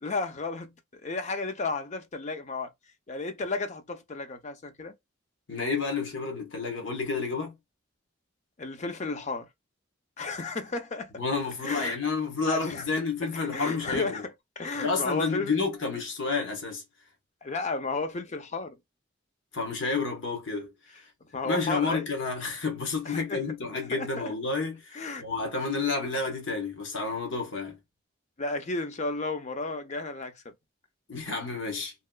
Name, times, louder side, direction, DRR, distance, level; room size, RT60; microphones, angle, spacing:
voice 1, 0.0-2.7 3.1-4.9 8.6-9.5 10.2-11.1 11.6-12.0 12.5-12.9 13.3-15.6 17.4-18.8 21.3-22.1 23.0-23.4 23.9-24.3 24.9-25.2 28.4-30.5, left 3 dB, 40° left, 0.6 m, -33 dB
voice 2, 5.5-7.5 11.2-14.2 14.7-16.8 19.5-20.7 21.4-27.8 31.1-31.9, left 4 dB, 75° left, 1.2 m, -30 dB
3.0 x 2.9 x 2.3 m
head